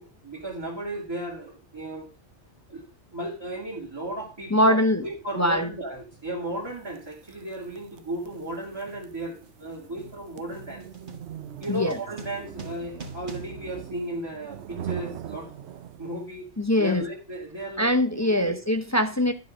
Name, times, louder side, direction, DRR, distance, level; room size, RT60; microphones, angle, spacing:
voice 1, 0.0-2.1 2.7-2.8 3.1-10.9 11.6-15.5 16.0-16.5 16.8-18.5, right 1 dB, 20° right, 2.0 m, -35 dB
voice 2, 4.5-5.0 5.4-5.7 11.7-12.0 16.6-17.0 17.8-19.3, left 1 dB, 20° left, 0.5 m, -22 dB
sound 1, 4.5-4.7 5.6-5.8 6.1-14.7, right 3 dB, 40° right, 1.5 m, -47 dB
sound 2, 6.9-16.3, right 10 dB, 65° right, 0.9 m, -41 dB
11.5 x 4.9 x 6.1 m
omnidirectional pair, 1.3 m